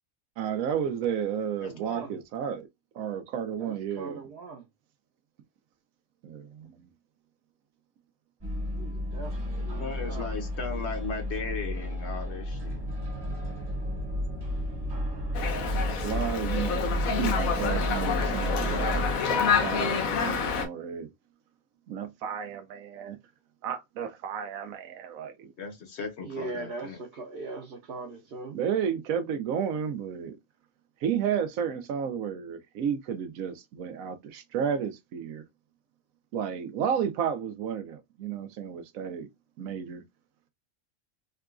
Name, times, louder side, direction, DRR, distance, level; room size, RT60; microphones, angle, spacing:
voice 1, 0.4-2.7 2.9-4.3 6.2-6.9 16.0-21.1 21.9-23.2 23.6-25.5 28.5-30.4 31.0-35.4 36.3-39.3 39.6-40.0, right 8 dB, 85° right, 1.1 m, -32 dB
voice 2, 1.7-2.2 3.6-4.6 8.7-10.3 26.2-28.6, right 3 dB, 55° right, 0.8 m, -40 dB
sound 1, 8.4-19.2, equal, 20° right, 0.8 m, -32 dB
voice 3, 9.6-12.8 25.6-27.0, left 4 dB, 55° left, 1.0 m, -37 dB
Dog, 15.3-20.7, left 5 dB, 80° left, 1.2 m, -28 dB
3.8 x 2.3 x 2.4 m
omnidirectional pair, 1.4 m